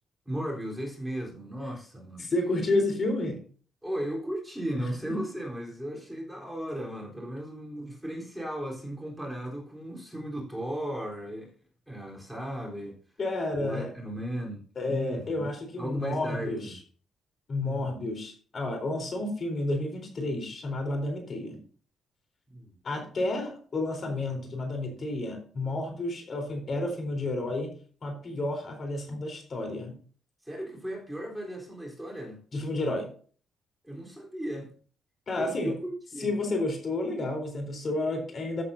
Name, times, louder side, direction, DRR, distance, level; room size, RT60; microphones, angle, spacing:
voice 1, 0.3-2.3 3.8-11.5 11.9-13.0 13.5-15.5 15.8-16.7 17.6-18.0 22.5-22.7 30.4-32.4 33.8-34.7 35.3-36.3, equal, 5° right, -2 dB, 3.9 m, -36 dB
voice 2, 2.2-3.4 5.1-5.2 13.2-13.9 14.8-16.7 17.5-21.6 22.8-27.8 28.0-29.9 32.5-33.1 35.3-35.7 36.2-38.6, left 2 dB, 45° left, 3 dB, 4.0 m, -31 dB
14.5 x 8.7 x 2.8 m, 0.43 s
cardioid pair, 90°, 0 cm